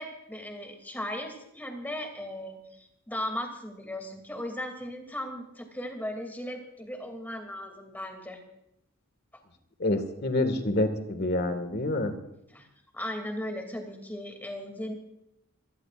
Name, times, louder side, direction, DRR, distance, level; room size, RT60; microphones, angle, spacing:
voice 1, 0.0-8.4 12.5-12.7 12.9-14.9, left 1 dB, 10° left, 4 dB, 2.7 m, -37 dB
voice 2, 9.8-12.1, left 1 dB, 50° left, 8 dB, 1.9 m, -27 dB
26.0 x 17.5 x 2.5 m, 0.82 s
head